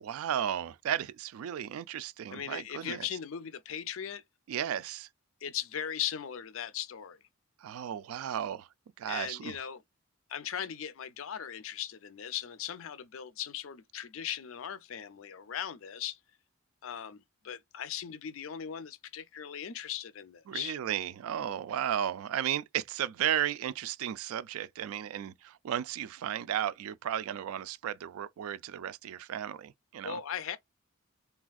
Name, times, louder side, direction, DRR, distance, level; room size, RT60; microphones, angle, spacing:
voice 1, 0.0-3.1 4.5-5.1 7.6-8.7 9.0-9.6 20.5-30.2, right 10 dB, 80° right, 0.3 m, -34 dB
voice 2, 2.3-4.2 5.4-7.2 9.1-9.8 10.3-16.2 16.8-20.8 30.0-30.6, left 9 dB, 70° left, 0.5 m, -38 dB
3.3 x 2.4 x 2.3 m
head